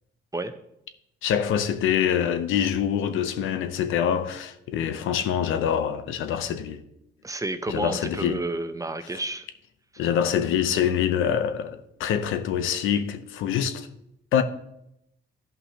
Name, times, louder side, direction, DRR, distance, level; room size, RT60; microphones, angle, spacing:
voice 1, 1.2-6.8 7.7-8.4 10.0-13.9 14.3-14.4, left 9 dB, 85° left, 0.8 m, -25 dB
voice 2, 7.2-9.5 9.9-10.0, right 2 dB, 15° right, 0.7 m, -31 dB
13.5 x 5.6 x 2.9 m
cardioid pair, 90°, 20 cm